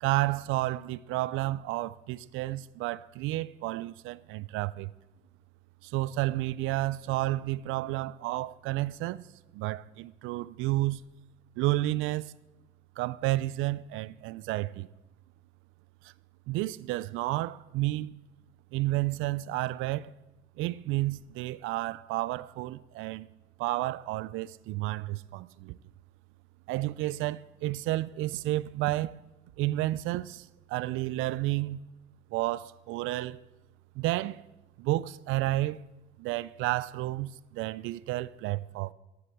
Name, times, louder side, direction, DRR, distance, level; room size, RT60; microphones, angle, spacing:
voice 1, 0.0-4.9 5.8-9.2 9.5-11.0 11.6-12.3 13.0-14.9 16.5-18.1 18.7-20.1 20.6-23.3 23.6-25.8 26.7-29.1 29.6-31.8 32.3-33.4 34.0-34.4 34.8-35.8 36.2-38.9, right 17 dB, 80° right, 0.5 m, -31 dB
13.0 x 7.9 x 8.0 m
cardioid pair, 110°, 20 cm